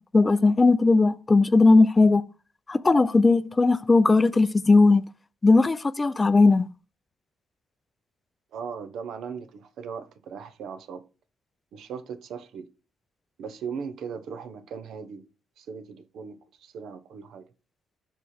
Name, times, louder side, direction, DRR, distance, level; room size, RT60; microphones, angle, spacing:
voice 1, 0.0-2.2 2.7-5.1 5.4-6.7, left 3 dB, 25° left, 0.4 m, -18 dB
voice 2, 8.5-11.0 11.7-12.7 13.4-15.2 15.6-17.4, right 6 dB, 75° right, 0.8 m, -38 dB
5.4 x 4.5 x 4.3 m
cardioid pair, 90°, 0 cm